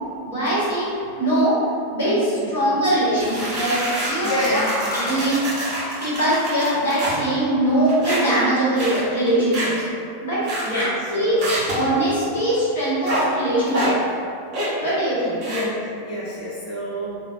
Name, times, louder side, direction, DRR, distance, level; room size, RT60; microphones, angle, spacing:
voice 1, 0.2-1.6 1.9-4.6 4.9-5.4 6.0-9.8 10.2-10.4 10.7-10.8 11.1-11.4 11.7-13.9 14.8-15.4, right 1 dB, 65° left, -9 dB, 1.2 m, -21 dB
sound 1, 3.2-7.2 7.9-8.4 8.8-9.0 9.5-9.8 10.5-10.8 11.4-11.9 13.1-13.2 13.7-13.9 14.5-14.8 15.4-15.6, equal, 35° right, 1.2 m, -27 dB
voice 2, 4.2-5.0 10.6-11.5 15.4-17.2, left 1 dB, 35° left, -10 dB, 1.3 m, -28 dB
3.0 x 2.3 x 2.8 m, 2.4 s
figure-of-eight pair, 90°, 0 cm